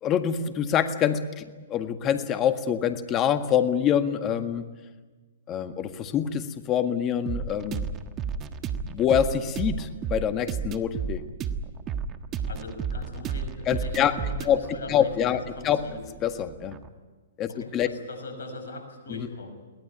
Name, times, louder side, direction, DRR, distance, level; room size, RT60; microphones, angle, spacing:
voice 1, 0.0-4.7 5.5-7.9 8.8-11.2 13.7-14.1 14.5-14.6 14.9-15.4 15.6-15.8 16.2-16.8 17.4-17.9 19.1-19.3, left 9 dB, 30° left, 8 dB, 1.7 m, -25 dB
sound 1, 7.2-16.9, right 6 dB, 25° right, 1.5 m, -33 dB
voice 2, 12.4-16.0 17.5-19.6, left 2 dB, 70° left, 6 dB, 5.9 m, -40 dB
23.0 x 18.0 x 10.0 m, 1.3 s
hypercardioid pair, 120°, 0 cm